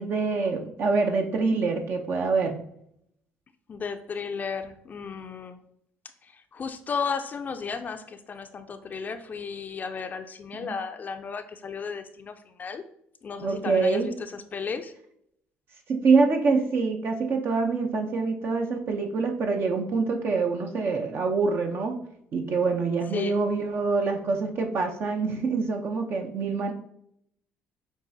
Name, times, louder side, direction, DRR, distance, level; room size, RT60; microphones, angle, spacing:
voice 1, 0.0-2.6 10.5-10.7 13.4-14.1 15.9-21.9 22.3-26.7, right 4 dB, 55° right, 4 dB, 0.6 m, -25 dB
voice 2, 3.7-5.6 6.2-12.8 13.2-14.9 23.1-23.4, left 5 dB, 40° left, 8 dB, 0.4 m, -34 dB
7.1 x 2.4 x 2.6 m, 0.73 s
supercardioid pair, 80°, 5 cm